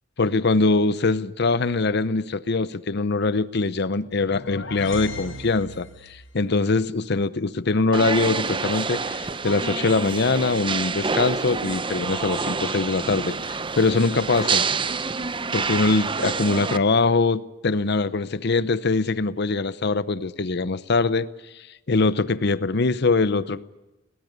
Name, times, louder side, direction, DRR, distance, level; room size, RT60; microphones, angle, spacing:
voice 1, 0.2-14.7 15.5-21.3 21.5-23.6, left 3 dB, 60° left, 0.7 m, -23 dB
sound 1, 4.0-6.3, left 2 dB, 80° left, 6.0 m, -38 dB
sound 2, 7.9-16.8, right 4 dB, 25° right, 0.7 m, -27 dB
21.5 x 18.5 x 9.5 m
head